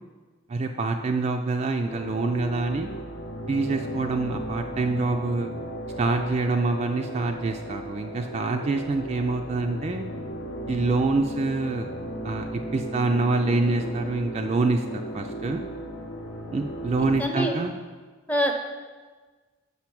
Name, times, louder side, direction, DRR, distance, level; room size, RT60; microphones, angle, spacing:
voice 1, 0.5-2.9 3.5-5.5 6.0-10.0 10.7-11.9 12.2-14.8 15.1-15.6 16.5-17.7, right 3 dB, 30° right, 4 dB, 0.3 m, -26 dB
sound 1, 1.8-17.2, right 1 dB, 80° left, 0.8 m, -36 dB
voice 2, 17.2-17.5 18.3-18.5, equal, 10° left, 3 dB, 0.7 m, -24 dB
5.8 x 5.5 x 6.0 m, 1.4 s
head